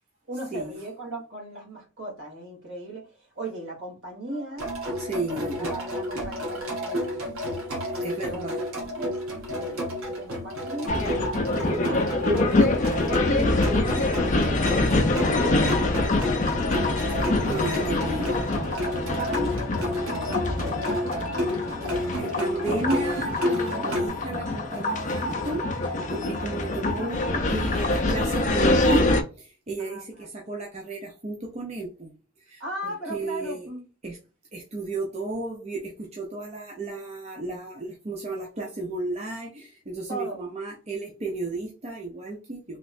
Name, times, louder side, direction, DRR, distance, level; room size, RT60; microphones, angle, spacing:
voice 1, 0.3-4.8 5.3-7.3 7.9-9.2 9.5-14.3 14.7-16.4 17.7-17.9 18.2-21.3 22.1-22.6 29.8-30.0 32.6-33.8 40.1-40.5, right 1 dB, 60° right, -3 dB, 1.8 m, -38 dB
sound 1, 4.6-24.1, equal, 80° right, 1.2 m, -31 dB
voice 2, 5.0-5.8 8.0-8.6 16.9-17.0 17.4-18.4 21.8-29.1 29.4-32.1 32.4-33.7 34.0-34.2 34.5-42.8, right 2 dB, 30° right, -1 dB, 0.6 m, -33 dB
sound 2, 10.9-29.2, left 2 dB, 35° left, 0.5 m, -25 dB
sound 3, 17.3-23.8 24.0-25.9, left 1 dB, 15° right, 1.1 m, -43 dB
3.2 x 2.9 x 2.6 m, 0.33 s
head